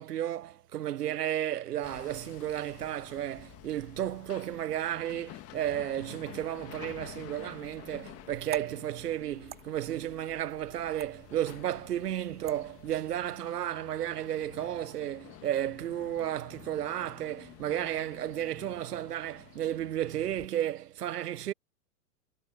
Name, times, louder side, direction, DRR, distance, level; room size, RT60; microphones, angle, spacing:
voice 1, 0.0-21.5, right 11 dB, 80° right, 1.1 m, -33 dB
Hammer, 1.8-20.5, left 16 dB, 30° left, 1.9 m, -51 dB
sound 1, 7.3-13.2, right 10 dB, 20° right, 2.3 m, -50 dB
hypercardioid pair, 125°, 46 cm